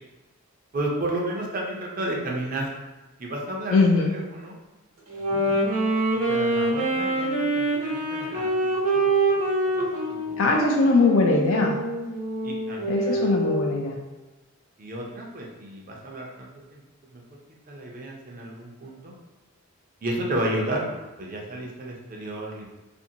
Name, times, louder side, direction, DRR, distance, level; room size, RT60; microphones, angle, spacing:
voice 1, 0.7-2.7 3.2-3.8 4.1-4.6 5.1-5.6 6.3-8.5 8.9-9.4 9.6-10.4 10.8-11.1 12.4-13.3 14.8-16.8 17.1-17.2 17.7-19.1 20.0-20.8 21.2-22.6, right 1 dB, 40° right, -1 dB, 0.5 m, -32 dB
voice 2, 3.7-4.1 10.4-11.8 12.8-14.0, left 3 dB, 65° left, 0 dB, 0.3 m, -21 dB
Wind instrument woodwind instrument, 5.1-13.8, right 2 dB, 75° right, 1.0 m, -25 dB
2.6 x 2.6 x 2.7 m, 1.1 s
head